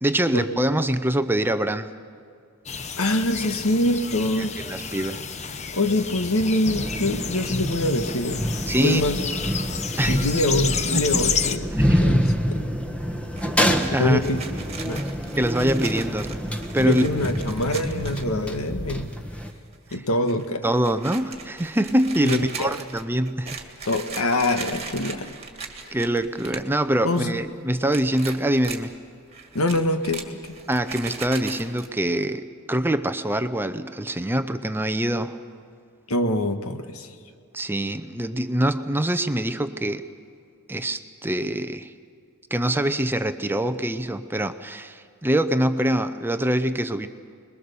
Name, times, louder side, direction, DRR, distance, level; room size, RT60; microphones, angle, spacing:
voice 1, 0.0-1.9 4.4-5.3 8.7-9.0 10.0-10.2 10.9-11.1 11.7-12.2 13.9-14.2 15.4-16.4 16.7-17.0 20.6-23.6 25.9-29.0 30.7-35.4 37.5-40.1 40.7-41.9 42.5-47.1, right 1 dB, 10° right, 10 dB, 0.6 m, -24 dB
sound 1, 2.7-11.6, left 6 dB, 30° left, 0.8 m, -30 dB
voice 2, 3.0-4.6 5.7-8.4 8.8-9.2 10.1-11.7 12.0-12.6 14.0-14.4 14.8-15.0 16.8-19.1 19.9-20.6 22.2-22.7 23.9-25.3 25.8-26.0 27.0-27.4 29.5-30.5 36.1-37.1, left 1 dB, 70° left, 7 dB, 1.5 m, -24 dB
sound 2, 6.6-19.5, equal, 5° left, 1.4 m, -27 dB
sound 3, 13.3-18.6 19.0-19.2 19.4-20.0 20.3-26.7 27.0-27.5 27.9-28.8 29.3-31.9, right 5 dB, 30° right, 2.0 m, -39 dB
27.0 x 21.5 x 6.9 m, 2.3 s
head